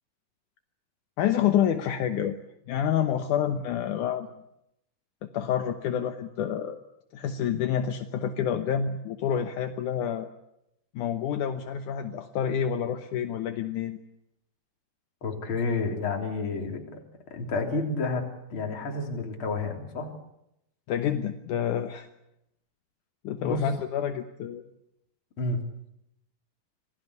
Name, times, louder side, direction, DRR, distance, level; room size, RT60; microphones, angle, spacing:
voice 1, 1.2-2.4 2.7-4.3 5.2-6.8 7.1-10.3 10.9-14.0 20.9-22.1 23.2-24.6, left 9 dB, 70° left, 7 dB, 2.0 m, -28 dB
voice 2, 15.2-17.0 17.3-20.1 23.4-23.7 25.4-25.6, left 3 dB, 30° left, 2 dB, 3.9 m, -30 dB
27.0 x 19.5 x 8.2 m, 0.81 s
omnidirectional pair, 4.8 m